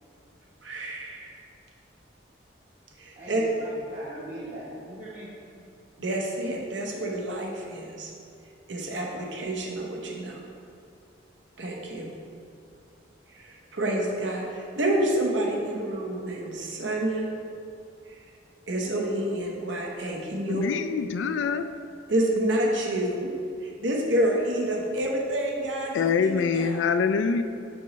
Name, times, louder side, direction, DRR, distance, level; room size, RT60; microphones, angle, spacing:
voice 1, 0.6-1.3 3.0-3.4 6.0-8.1 8.7-10.4 11.6-12.1 13.3-17.3 18.1-18.2 18.7-20.6 22.1-23.3 23.6-26.8, right 1 dB, 80° right, -1 dB, 0.9 m, -28 dB
voice 2, 3.2-5.3, right 1 dB, 40° right, -10 dB, 0.9 m, -40 dB
voice 3, 20.5-21.7 25.9-27.4, left 5 dB, 80° left, 10 dB, 0.3 m, -25 dB
6.7 x 5.2 x 3.1 m, 2.4 s
head